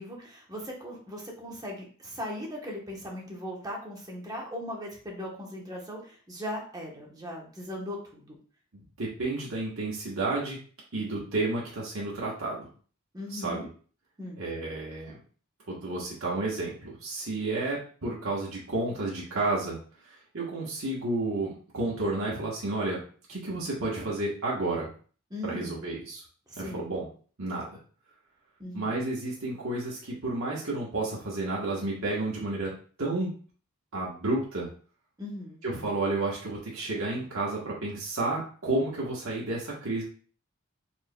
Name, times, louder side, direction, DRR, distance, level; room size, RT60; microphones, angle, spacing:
voice 1, 0.0-8.4 13.1-13.6 14.2-14.4 25.3-25.9 26.5-26.8 28.6-29.0 35.2-35.6, left 1 dB, 20° right, -1 dB, 1.0 m, -38 dB
voice 2, 8.7-10.6 10.9-12.7 13.3-13.7 14.4-15.2 15.7-19.8 20.0-23.0 23.3-24.9 25.4-26.2 26.6-27.1 27.4-27.7 28.7-32.7 33.0-33.3 33.9-34.7 35.6-40.0, right 2 dB, 80° right, -4 dB, 1.2 m, -31 dB
4.4 x 3.9 x 2.2 m, 0.42 s
head